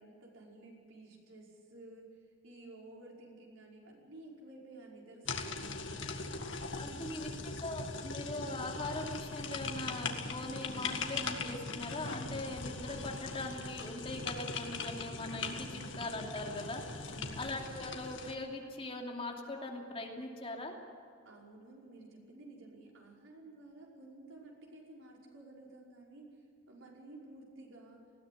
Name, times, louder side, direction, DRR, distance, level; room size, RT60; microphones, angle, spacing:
voice 1, 0.0-6.4 6.8-7.4 17.1-17.6 21.2-26.3 26.7-28.0, right 2 dB, 85° right, -2 dB, 5.4 m, -53 dB
sound 1, 5.3-18.3, left 4 dB, 65° left, 1.8 m, -40 dB
voice 2, 6.8-7.3 7.6-16.8 17.4-20.7, left 2 dB, 30° left, 0 dB, 2.7 m, -41 dB
20.0 x 16.5 x 9.2 m, 2.1 s
head